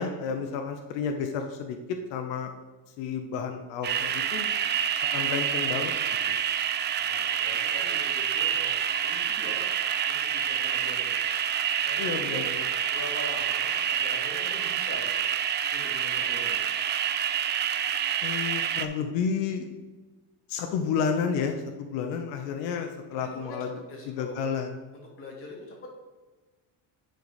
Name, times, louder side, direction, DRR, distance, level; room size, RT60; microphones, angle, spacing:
voice 1, 0.0-1.8 2.1-2.5 3.0-4.5 5.1-5.9 6.3-6.4 12.0-12.4 18.2-19.7 20.5-23.7 24.2-24.7, left 6 dB, 85° left, 5 dB, 0.9 m, -31 dB
sound 1, 3.8-18.9, right 9 dB, 25° right, 0.3 m, -28 dB
voice 2, 7.0-9.7 10.1-11.3 11.8-12.4 12.9-15.3 15.7-16.7 23.2-24.5 24.9-25.9, left 1 dB, 30° left, -2 dB, 2.4 m, -43 dB
10.5 x 4.1 x 4.9 m, 1.2 s
cardioid pair, 145°, 42 cm